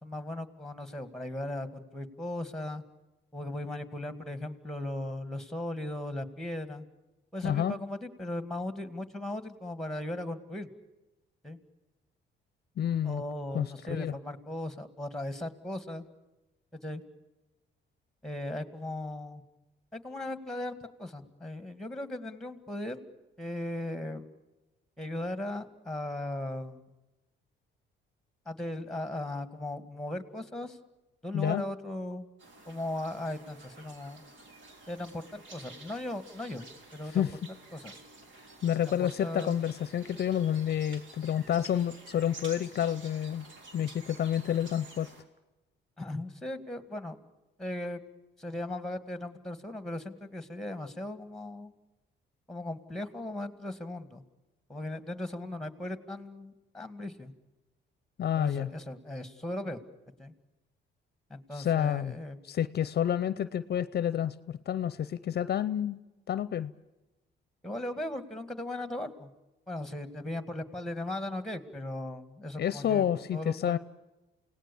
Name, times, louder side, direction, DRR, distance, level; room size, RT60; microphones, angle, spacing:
voice 1, 0.0-2.8 3.3-6.9 7.3-10.7 11.4-11.6 13.0-16.0 16.7-17.0 18.2-19.4 19.9-23.0 23.4-24.3 25.0-26.8 28.5-30.8 31.2-32.3 32.7-34.2 34.9-36.7 36.9-37.3 37.7-38.0 38.9-39.6 46.0-47.2 47.6-48.0 48.4-51.7 52.5-54.2 54.7-57.3 58.4-59.8 60.2-60.3 61.3-62.4 67.6-69.3 69.7-73.0 73.3-73.8, left 1 dB, ahead, 10 dB, 2.2 m, -37 dB
voice 2, 7.4-7.8 12.8-13.2 13.5-14.1 31.3-31.6 37.1-37.3 38.6-43.5 43.7-45.1 58.2-58.7 61.5-62.1 62.4-66.0 66.3-66.7 72.5-73.8, left 10 dB, 55° left, 16 dB, 0.7 m, -29 dB
sound 1, 32.4-45.2, right 2 dB, 70° right, 3.7 m, -51 dB
29.0 x 18.0 x 7.2 m, 1.0 s
cardioid pair, 90°, 20 cm